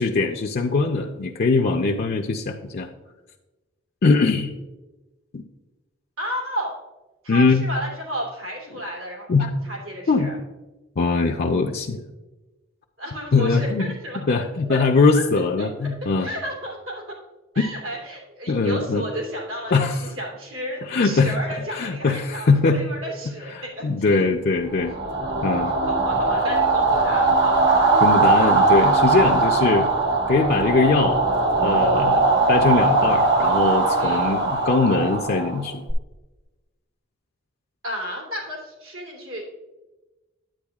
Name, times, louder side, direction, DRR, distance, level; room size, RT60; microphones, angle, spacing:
voice 1, 0.0-2.9 4.0-4.5 5.3-5.4 7.3-7.7 9.3-9.5 10.1-10.3 11.0-12.0 13.3-13.9 14.3-16.3 18.5-19.0 19.7-20.0 20.9-21.4 21.7-22.9 23.5-24.9 25.4-25.7 28.0-29.9 30.3-31.2 31.6-32.2 32.5-35.8, left 3 dB, 50° left, 1 dB, 0.5 m, -21 dB
voice 2, 6.2-6.8 7.2-9.3 9.6-10.3 13.0-14.2 14.7-14.8 15.1-15.2 15.6-15.7 16.2-17.0 17.5-24.2 25.9-28.0 34.0-34.4 37.8-39.4, equal, 85° right, -3 dB, 2.9 m, -32 dB
sound 1, 24.8-35.9, right 3 dB, 60° right, 1.4 m, -20 dB
10.0 x 8.8 x 2.4 m, 1.1 s
head